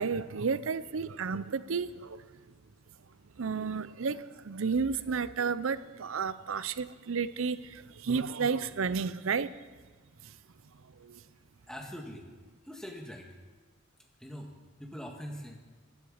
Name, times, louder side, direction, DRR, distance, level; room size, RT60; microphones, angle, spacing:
voice 1, 0.0-2.2 3.4-9.5 11.0-11.2, right 5 dB, 75° right, 0.6 m, -32 dB
voice 2, 11.7-12.3 12.6-13.3 14.2-14.5 14.8-15.6, equal, 5° left, 1.7 m, -42 dB
12.5 x 11.0 x 8.6 m
head